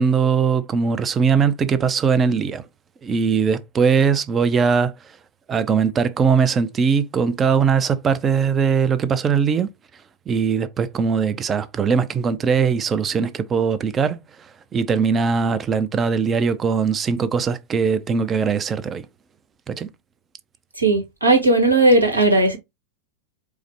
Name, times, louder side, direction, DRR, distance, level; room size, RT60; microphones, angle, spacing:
voice 1, 0.0-2.6 3.0-4.9 5.5-9.7 10.3-19.1 19.7-19.9, right 6 dB, 20° right, 0.4 m, -20 dB
voice 2, 20.8-22.6, right 2 dB, 80° right, 1.3 m, -16 dB
4.7 x 2.0 x 3.3 m
figure-of-eight pair, 90°, 0 cm